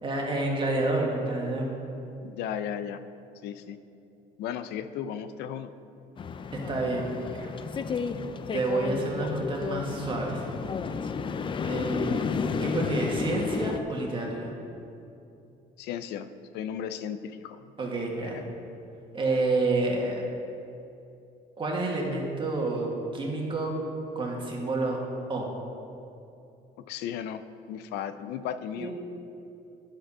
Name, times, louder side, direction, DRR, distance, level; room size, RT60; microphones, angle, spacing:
voice 1, 0.0-1.7 6.7-7.4 8.5-10.4 11.6-14.5 17.8-18.4 19.1-20.2 21.6-23.7 24.2-25.0 25.3-25.5 28.8-28.9, right 2 dB, 30° right, -1 dB, 1.6 m, -29 dB
voice 2, 2.2-3.0 3.4-3.8 4.4-5.7 15.8-16.3 16.5-17.6 18.2-18.4 26.9-27.4 27.7-28.9, left 9 dB, 85° left, 12 dB, 0.4 m, -35 dB
sound 1, 6.2-13.8, left 5 dB, 30° left, 0.4 m, -32 dB
10.0 x 5.1 x 5.5 m, 2.7 s
cardioid pair, 110°, 17 cm